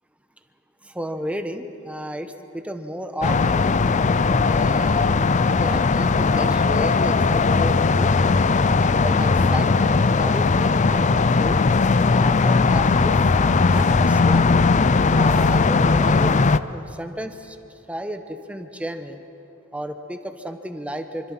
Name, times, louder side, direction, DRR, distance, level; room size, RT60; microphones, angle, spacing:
voice 1, 0.8-3.6 4.4-8.1 8.8-11.6 12.1-13.2 13.7-14.5 15.1-16.4 16.7-17.6 17.9-19.2 19.7-21.3, equal, 5° right, 7 dB, 1.1 m, -33 dB
sound 1, 3.2-16.6, left 4 dB, 35° left, 0.5 m, -18 dB
26.0 x 25.5 x 5.9 m, 2.7 s
head